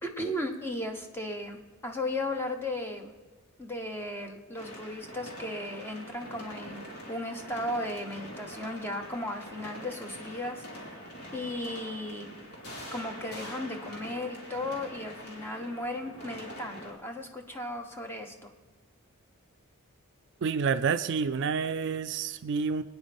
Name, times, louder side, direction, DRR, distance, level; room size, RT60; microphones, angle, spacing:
voice 1, 0.0-3.1 3.6-11.0 11.3-12.3 12.9-18.5, left 1 dB, 10° left, 3 dB, 1.1 m, -36 dB
sound 1, 4.6-16.9, equal, 85° left, 2.5 m, -44 dB
voice 2, 20.4-22.8, right 5 dB, 55° right, 11 dB, 0.4 m, -28 dB
25.5 x 9.4 x 3.5 m, 1.3 s
head